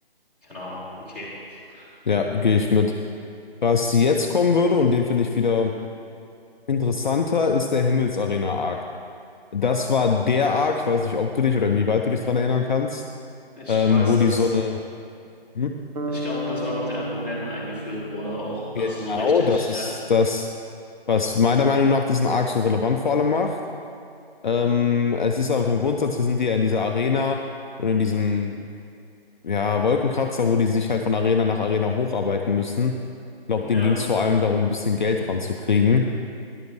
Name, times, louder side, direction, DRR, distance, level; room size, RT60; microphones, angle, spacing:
voice 1, 0.4-1.9 13.6-14.5 16.1-19.9 33.6-33.9, equal, 5° right, -12 dB, 2.8 m, -33 dB
voice 2, 2.1-2.9 3.6-5.7 6.7-8.8 9.5-13.0 13.7-14.7 15.5-15.7 18.8-20.5 21.1-23.5 24.4-27.4 27.8-28.6 29.4-32.9 33.5-36.1, left 5 dB, 50° left, 3 dB, 0.6 m, -21 dB
sound 1, 15.9-19.9, left 1 dB, 40° right, 1.1 m, -33 dB
14.5 x 10.5 x 3.1 m, 2.4 s
figure-of-eight pair, 145°, 31 cm